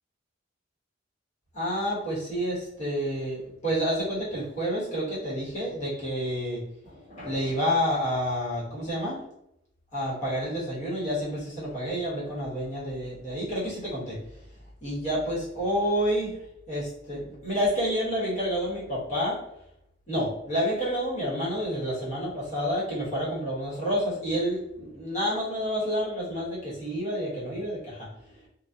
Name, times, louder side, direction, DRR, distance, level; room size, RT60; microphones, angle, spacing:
voice 1, 1.5-9.2 9.9-14.2 14.8-16.4 16.7-19.4 20.1-28.5, equal, 40° left, -8 dB, 1.2 m, -29 dB
2.6 x 2.2 x 2.3 m, 0.80 s
head